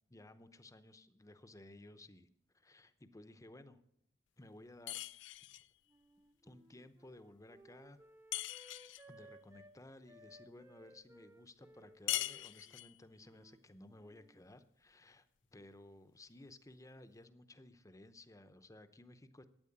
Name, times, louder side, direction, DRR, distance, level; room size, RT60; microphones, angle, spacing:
voice 1, 0.1-2.3 2.5-3.8 4.4-5.1 6.4-8.0 9.1-19.4, left 1 dB, 20° left, 11 dB, 0.8 m, -57 dB
sound 1, 4.9-5.7 8.3-9.1 12.1-13.0, left 15 dB, 85° left, 0.4 m, -40 dB
Wind instrument woodwind instrument, 5.9-9.8 10.1-13.6 13.9-14.4, right 1 dB, 15° right, 0.9 m, -62 dB
12.5 x 9.1 x 8.6 m, 0.74 s
head